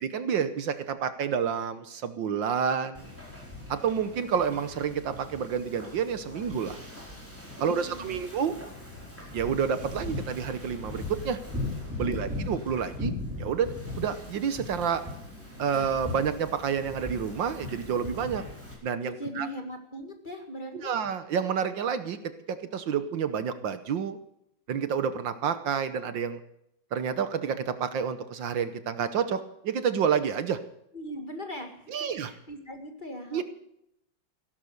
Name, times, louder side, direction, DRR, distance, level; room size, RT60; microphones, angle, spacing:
voice 1, 0.0-3.1 3.7-6.8 7.6-8.5 9.3-11.4 12.0-15.0 15.6-18.4 18.8-19.5 20.7-22.2 22.5-24.2 24.7-26.4 26.9-30.6 31.9-32.3 33.3-33.4, right 7 dB, 65° right, 11 dB, 1.6 m, -29 dB
Wind / Ocean, 2.9-18.7, left 2 dB, 5° right, 4.8 m, -39 dB
voice 2, 7.6-8.3 12.1-12.2 19.2-20.9 30.9-33.4, equal, 25° left, 5 dB, 2.0 m, -40 dB
16.5 x 12.5 x 6.5 m, 0.77 s
omnidirectional pair, 2.3 m